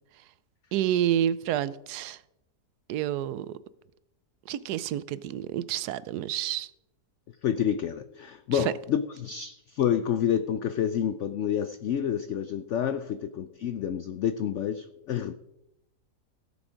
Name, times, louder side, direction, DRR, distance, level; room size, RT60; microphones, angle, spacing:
voice 1, 0.7-2.2 2.9-3.5 4.5-6.7 8.5-8.7, right 11 dB, 80° right, 1.1 m, -29 dB
voice 2, 7.4-15.3, left 9 dB, 65° left, 0.7 m, -28 dB
16.5 x 7.1 x 5.0 m
omnidirectional pair, 1.7 m